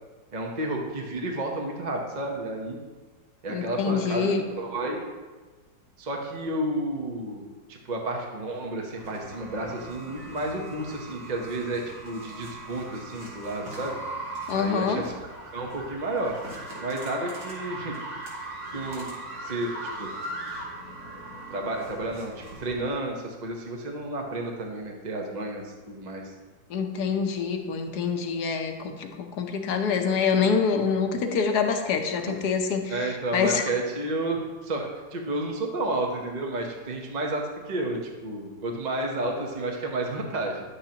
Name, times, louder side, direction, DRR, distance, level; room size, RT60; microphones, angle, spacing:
voice 1, 0.3-2.8 3.4-4.3 4.6-5.0 6.0-7.4 7.7-14.0 14.5-15.1 15.5-16.4 16.8-18.0 18.7-19.1 19.4-19.7 20.0-20.1 21.5-26.2 32.9-38.0 38.2-40.6, right 2 dB, 40° right, 0 dB, 0.6 m, -31 dB
voice 2, 3.5-4.4 14.5-15.0 26.7-33.7, left 6 dB, 65° left, 4 dB, 1.3 m, -26 dB
sound 1, 9.0-22.7, right 2 dB, 85° right, 2.8 m, -39 dB
10.5 x 8.2 x 2.9 m, 1.3 s
omnidirectional pair, 2.0 m